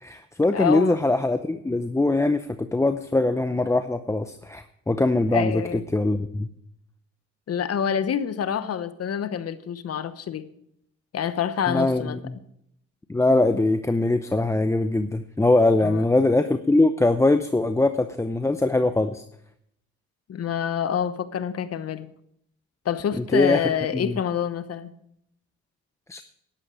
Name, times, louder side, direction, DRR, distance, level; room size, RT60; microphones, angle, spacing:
voice 1, 0.0-6.5 11.7-12.2 13.1-19.2 23.3-23.6 23.9-24.1 26.1-26.2, left 2 dB, 10° left, 0.6 m, -22 dB
voice 2, 0.5-1.0 5.3-5.8 7.5-10.5 11.1-12.2 15.8-16.0 20.3-22.1 22.8-24.9, left 8 dB, 55° left, 1.0 m, -27 dB
11.5 x 11.0 x 5.0 m
cardioid pair, 90°, 30 cm